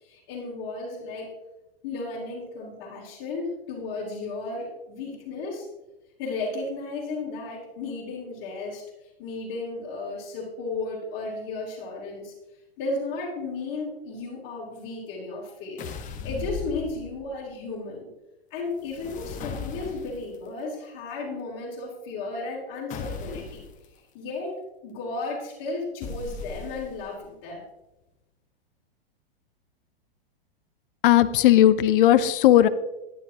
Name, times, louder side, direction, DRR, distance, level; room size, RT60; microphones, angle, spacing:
voice 1, 0.0-1.3 1.8-5.7 6.2-12.3 12.8-18.1 18.5-23.6 24.1-24.5 24.8-27.6, left 3 dB, 40° left, -6 dB, 3.6 m, -34 dB
sound 1, 15.8-17.4 18.8-20.4 22.9-23.7 26.0-27.1, left 5 dB, 25° left, 1.3 m, -37 dB
voice 2, 31.0-32.7, left 12 dB, 60° left, 14 dB, 0.8 m, -17 dB
15.0 x 11.0 x 3.0 m, 0.98 s
hypercardioid pair, 135°, 30 cm